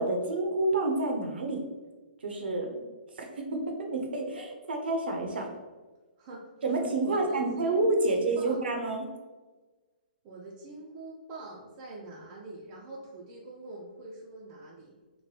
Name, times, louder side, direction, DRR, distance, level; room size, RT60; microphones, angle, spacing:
voice 1, 0.0-1.6 2.2-2.8 3.2-5.5 6.6-9.0, right 2 dB, 80° right, 2 dB, 0.7 m, -29 dB
voice 2, 6.2-6.5 7.0-8.6 10.2-15.0, right 2 dB, 30° right, -4 dB, 0.5 m, -44 dB
2.9 x 2.2 x 3.2 m, 1.3 s
hypercardioid pair, 145°, 5 cm